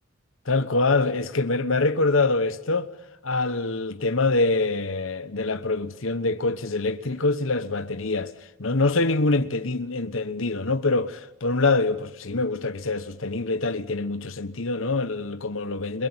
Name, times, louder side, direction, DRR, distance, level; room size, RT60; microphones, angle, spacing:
voice 1, 0.5-2.9 3.2-8.3 8.6-16.1, left 3 dB, 75° left, 1.2 m, -25 dB
23.0 x 23.0 x 9.8 m
head